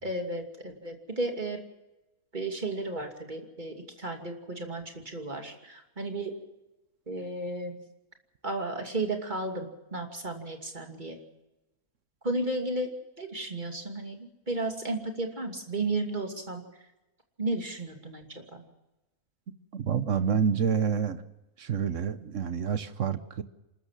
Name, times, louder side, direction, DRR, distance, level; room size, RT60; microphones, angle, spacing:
voice 1, 0.0-1.6 2.3-6.3 7.1-7.8 8.4-11.2 12.2-12.9 13.2-16.6 17.4-18.2 18.5-18.6, right 2 dB, 30° right, 4 dB, 2.8 m, -33 dB
voice 2, 19.7-21.2 21.6-23.4, right 7 dB, 60° right, 12 dB, 1.3 m, -28 dB
27.5 x 13.0 x 7.5 m, 0.97 s
omnidirectional pair, 1.6 m